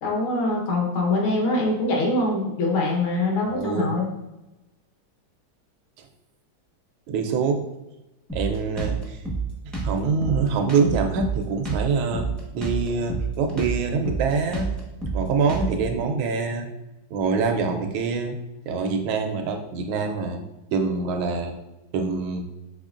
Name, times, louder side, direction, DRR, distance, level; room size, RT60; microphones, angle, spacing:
voice 1, 0.0-4.1, left 2 dB, 80° left, -1 dB, 1.9 m, -23 dB
voice 2, 3.5-4.0 7.1-7.6 8.3-9.2 9.8-12.3 12.5-14.7 15.1-16.7 17.1-18.4 18.7-20.4 20.7-21.5 21.9-22.4, right 5 dB, 80° right, 4 dB, 1.4 m, -25 dB
Drum kit, 8.3-16.0, right 4 dB, ahead, 0.4 m, -29 dB
5.6 x 3.6 x 2.4 m, 0.97 s
omnidirectional pair, 2.2 m